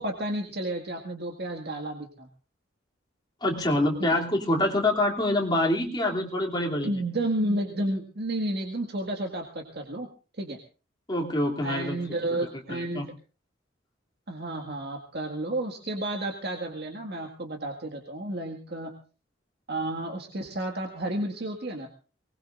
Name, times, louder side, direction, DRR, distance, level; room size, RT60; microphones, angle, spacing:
voice 1, 0.0-2.3 4.0-4.2 6.8-10.1 10.4-10.6 11.6-13.1 14.3-19.0 19.7-21.9, right 1 dB, 60° right, 2 dB, 1.9 m, -31 dB
voice 2, 3.4-6.9 11.1-12.0 12.7-13.0, left 1 dB, 25° left, -1 dB, 2.8 m, -26 dB
23.5 x 20.0 x 2.5 m, 0.35 s
head